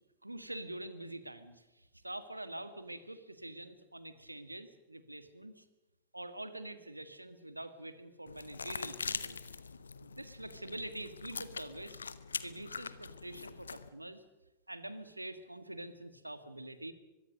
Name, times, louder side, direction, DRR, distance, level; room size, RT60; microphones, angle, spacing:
voice 1, 0.2-5.6 6.1-9.5 10.0-12.0 12.4-14.2 14.7-16.9, right 1 dB, 85° right, 12 dB, 1.7 m, -45 dB
sound 1, 8.3-13.9, left 5 dB, 75° left, 0.9 m, -43 dB
24.0 x 22.0 x 6.5 m, 1.0 s
figure-of-eight pair, 90°, 0 cm